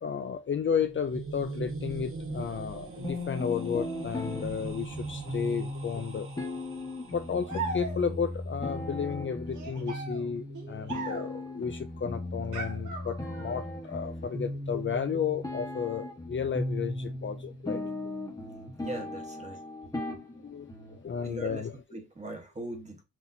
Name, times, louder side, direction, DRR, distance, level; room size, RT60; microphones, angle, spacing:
voice 1, 0.0-6.3 7.1-17.8 20.4-21.8, left 7 dB, 40° left, 0.5 m, -33 dB
sound 1, 0.6-7.6, right 3 dB, 45° right, 1.2 m, -41 dB
sound 2, 3.0-21.0, left 1 dB, 10° left, 1.2 m, -37 dB
sound 3, 7.5-8.3 9.5-11.5 12.5-13.6, right 4 dB, 85° right, 1.9 m, -38 dB
voice 2, 18.8-19.6 21.2-23.0, right 2 dB, 25° right, 1.2 m, -40 dB
6.0 x 2.9 x 2.6 m
wide cardioid pair, 150°, 30 cm